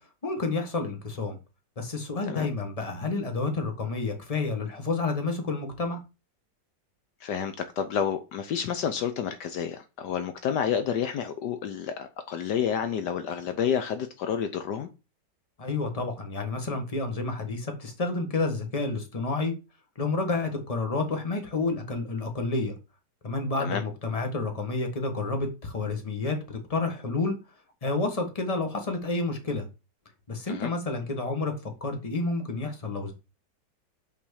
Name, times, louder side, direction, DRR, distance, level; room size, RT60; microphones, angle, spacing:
voice 1, 0.2-1.4 1.8-6.0 15.6-19.5 20.0-22.7 23.2-27.4 27.8-29.7 30.3-33.1, left 3 dB, 20° left, 1.5 m, -30 dB
voice 2, 7.2-14.9 23.6-23.8 30.5-30.7, left 8 dB, 70° left, 1.4 m, -29 dB
5.8 x 4.7 x 6.4 m
omnidirectional pair, 1.9 m